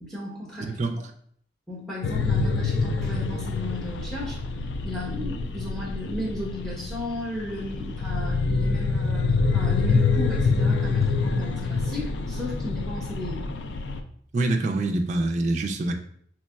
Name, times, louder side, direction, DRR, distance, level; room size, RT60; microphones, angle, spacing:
voice 1, 0.0-0.7 1.7-4.4 4.8-13.4, left 1 dB, ahead, -5 dB, 1.0 m, -35 dB
voice 2, 0.7-1.0 14.3-15.9, right 2 dB, 40° right, 4 dB, 0.4 m, -25 dB
sound 1, 2.0-14.0, left 4 dB, 80° left, 0.3 m, -26 dB
4.2 x 2.9 x 2.3 m, 0.62 s
head